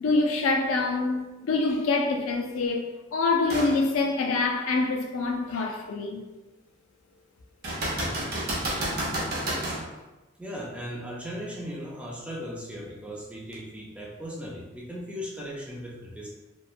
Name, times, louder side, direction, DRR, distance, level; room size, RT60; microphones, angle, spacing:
voice 1, 0.0-6.2, left 3 dB, 85° left, 0.4 m, -26 dB
sound 1, 3.5-3.8 4.3-4.4 7.6-9.8 13.5-13.6, right 1 dB, 50° right, 0.6 m, -30 dB
voice 2, 10.4-16.3, equal, 5° right, 0.4 m, -37 dB
3.0 x 2.1 x 2.3 m
head